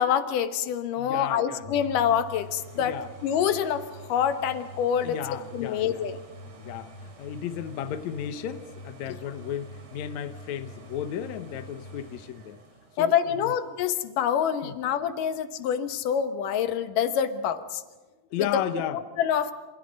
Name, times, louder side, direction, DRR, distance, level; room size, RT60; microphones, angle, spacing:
voice 1, 0.0-3.8 4.1-5.2 5.5-6.2 13.0-17.8 18.9-19.5, left 8 dB, 85° left, 10 dB, 2.8 m, -26 dB
voice 2, 1.0-1.7 2.7-3.1 5.0-6.0 6.5-12.6 13.0-13.1 13.4-13.5 14.6-14.7 18.3-19.0, left 10 dB, 70° left, 9 dB, 2.2 m, -34 dB
sound 1, 1.6-15.3 15.8-15.9, right 1 dB, 55° right, 4.4 m, -46 dB
27.5 x 27.5 x 5.3 m, 1.3 s
omnidirectional pair, 3.7 m